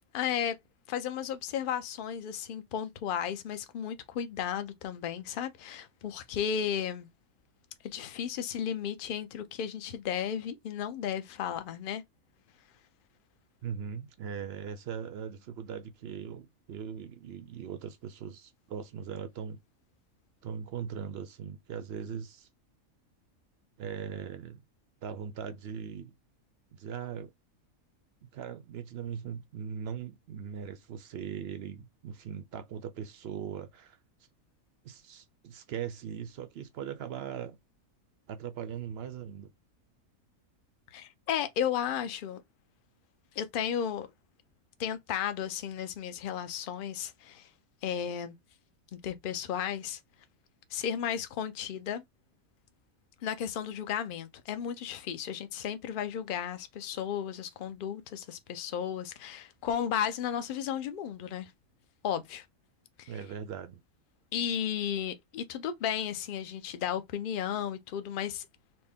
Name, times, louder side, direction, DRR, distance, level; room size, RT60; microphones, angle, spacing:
voice 1, 0.1-0.6 0.9-7.1 7.8-12.0 40.9-42.4 43.3-44.1 44.8-47.5 47.8-48.3 49.0-50.0 50.7-52.0 53.2-61.5 62.0-62.4 63.0-63.1 64.3-68.5, left 9 dB, 55° left, 0.6 m, -34 dB
voice 2, 13.6-19.6 20.4-22.5 23.8-24.6 25.0-26.2 26.8-27.3 28.3-34.0 34.8-37.6 38.3-39.5 63.1-63.8, right 7 dB, 65° right, 0.6 m, -40 dB
4.3 x 2.1 x 3.5 m
omnidirectional pair, 1.5 m